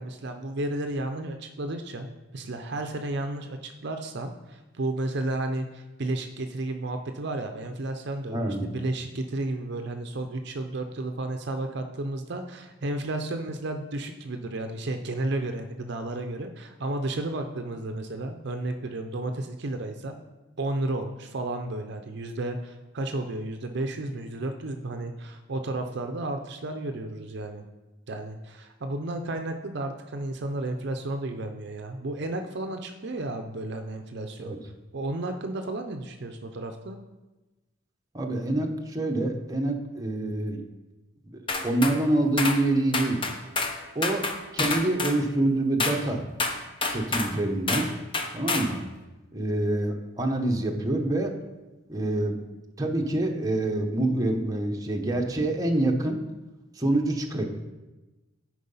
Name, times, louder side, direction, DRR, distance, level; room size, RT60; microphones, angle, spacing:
voice 1, 0.0-2.1 2.3-20.1 20.6-27.6 28.1-34.5 34.9-37.0, right 2 dB, 55° right, 6 dB, 0.6 m, -32 dB
voice 2, 8.3-8.7 34.4-34.6 38.1-40.6 41.6-43.2 43.9-44.2 44.5-46.2 46.8-47.9 48.3-48.8 49.3-51.3 51.9-52.4 52.8-56.2 56.8-57.5, right 1 dB, 15° right, 1 dB, 0.9 m, -26 dB
sound 1, 41.5-42.0 42.4-42.6 42.9-43.8 44.0-45.2 45.8-46.0 46.4-47.3 47.7-47.9 48.1-48.7, left 3 dB, 25° left, 0.7 m, -28 dB
10.5 x 4.8 x 5.5 m, 1.1 s
head